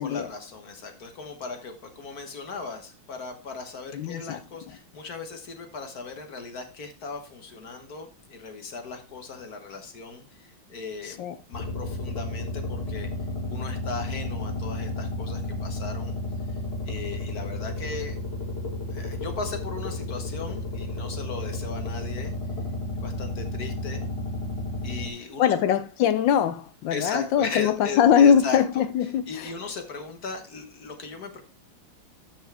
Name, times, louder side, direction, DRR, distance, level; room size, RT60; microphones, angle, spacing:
voice 1, 0.0-11.2 11.5-13.1 13.5-16.1 16.8-18.2 18.9-22.3 23.0-24.0 24.8-25.5 26.9-31.4, left 4 dB, 50° left, 1.6 m, -37 dB
voice 2, 3.9-4.4 11.0-11.4 25.4-29.5, left 8 dB, 75° left, 1.2 m, -22 dB
sound 1, 11.5-25.1, left 2 dB, 30° left, 2.1 m, -32 dB
12.0 x 5.9 x 3.4 m
omnidirectional pair, 2.2 m